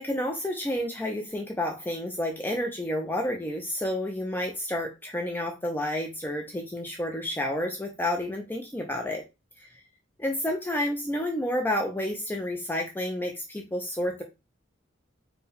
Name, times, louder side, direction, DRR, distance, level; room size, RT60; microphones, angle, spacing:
voice 1, 0.0-9.2 10.2-14.2, left 1 dB, 10° left, 2 dB, 0.5 m, -30 dB
4.4 x 2.2 x 3.4 m, 0.25 s
head